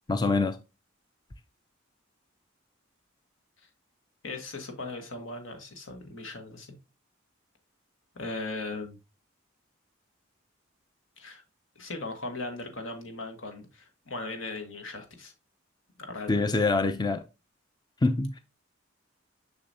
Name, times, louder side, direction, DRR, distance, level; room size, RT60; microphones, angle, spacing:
voice 1, 0.1-0.6 16.3-17.2 18.0-18.4, left 3 dB, 20° left, 0.4 m, -25 dB
voice 2, 4.2-6.8 8.1-9.0 11.2-11.4 11.7-15.3 16.0-16.5, left 2 dB, 80° left, 1.5 m, -38 dB
6.7 x 5.9 x 2.7 m
head